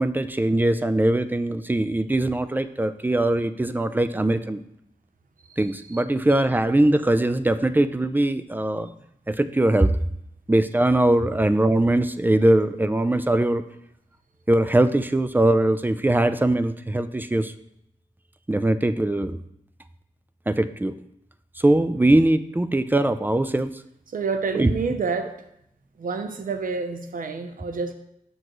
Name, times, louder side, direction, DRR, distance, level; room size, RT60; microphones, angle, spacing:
voice 1, 0.0-4.6 5.6-8.9 9.3-9.9 10.5-13.6 14.5-17.5 18.5-19.4 20.5-20.9 21.6-23.8 24.5-24.7, right 1 dB, 15° right, 12 dB, 0.4 m, -21 dB
voice 2, 24.1-25.3 26.0-27.9, right 4 dB, 70° right, 7 dB, 0.7 m, -28 dB
7.8 x 6.1 x 3.1 m, 0.76 s
cardioid pair, 65°, 15 cm